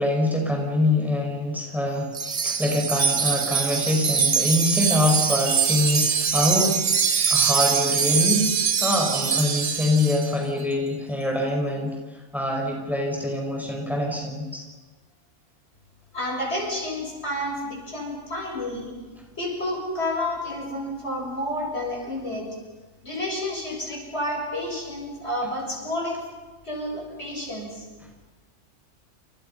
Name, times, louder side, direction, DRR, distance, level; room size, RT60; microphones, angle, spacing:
voice 1, 0.0-6.8 7.3-14.6, left 1 dB, ahead, 1 dB, 5.8 m, -25 dB
Wind chime, 2.1-10.3, right 6 dB, 50° right, 1.3 m, -23 dB
voice 2, 16.1-19.0 19.4-22.5 23.0-26.2 26.6-27.9, left 1 dB, 55° left, 0 dB, 7.4 m, -30 dB
29.5 x 28.5 x 5.8 m, 1.3 s
omnidirectional pair, 1.3 m